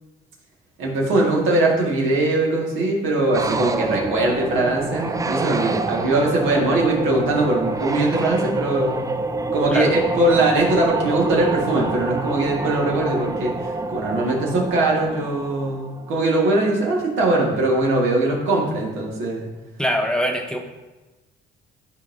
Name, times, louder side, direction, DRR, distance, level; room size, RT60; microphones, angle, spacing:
voice 1, 0.8-9.0 9.5-19.5, right 2 dB, 80° right, -2 dB, 1.8 m, -21 dB
sound 1, 3.3-16.3, right 3 dB, 15° right, 0.4 m, -27 dB
voice 2, 19.8-20.6, equal, 5° left, 2 dB, 0.9 m, -22 dB
11.0 x 4.1 x 2.7 m, 1.1 s
cardioid pair, 90°, 20 cm